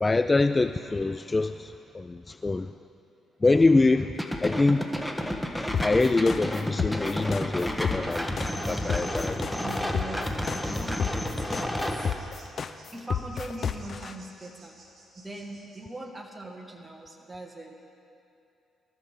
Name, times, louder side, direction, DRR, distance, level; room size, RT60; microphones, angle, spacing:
voice 1, 0.0-2.7 3.4-4.1 4.4-4.8 5.8-9.5, left 3 dB, 20° left, 11 dB, 0.3 m, -24 dB
sound 1, 4.2-12.1, left 1 dB, 5° left, 1.3 m, -31 dB
sound 2, 5.7-14.1, left 7 dB, 50° left, 0.7 m, -31 dB
sound 3, 8.5-15.8, right 3 dB, 35° right, 4.4 m, -53 dB
voice 2, 9.5-10.4 10.8-12.1 12.9-14.8 15.2-17.7, right 1 dB, 15° right, 1 dB, 1.8 m, -41 dB
25.5 x 14.0 x 3.7 m, 2.7 s
cardioid pair, 90°, 0 cm